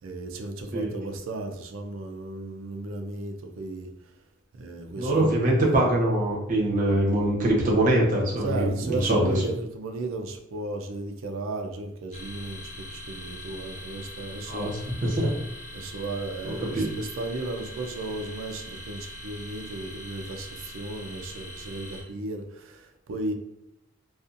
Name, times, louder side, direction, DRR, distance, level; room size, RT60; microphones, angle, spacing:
voice 1, 0.0-3.9 4.6-5.4 8.4-14.7 15.7-23.3, right 2 dB, 75° right, 4 dB, 0.4 m, -35 dB
voice 2, 4.9-9.4 14.5-15.3 16.4-16.9, right 1 dB, 40° right, -4 dB, 0.7 m, -23 dB
sound 1, 12.1-22.0, left 1 dB, 35° left, 0.6 m, -42 dB
2.5 x 2.4 x 2.5 m, 0.81 s
head